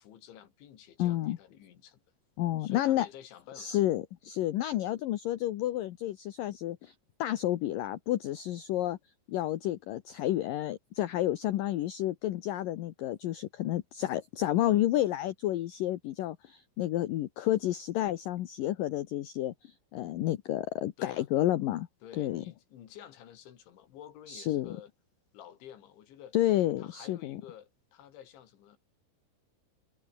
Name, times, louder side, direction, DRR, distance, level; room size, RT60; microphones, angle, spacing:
voice 1, 0.0-2.0 2.6-3.8 21.0-21.3 22.0-24.9 25.3-26.4 26.8-28.8, left 10 dB, 90° left, 5.0 m, -51 dB
voice 2, 1.0-1.4 2.4-3.1 3.6-6.9 7.2-9.0 9.3-21.9 22.2-22.4 24.3-24.7 26.3-27.4, left 14 dB, 70° left, 2.2 m, -30 dB
omnidirectional pair, 5.2 m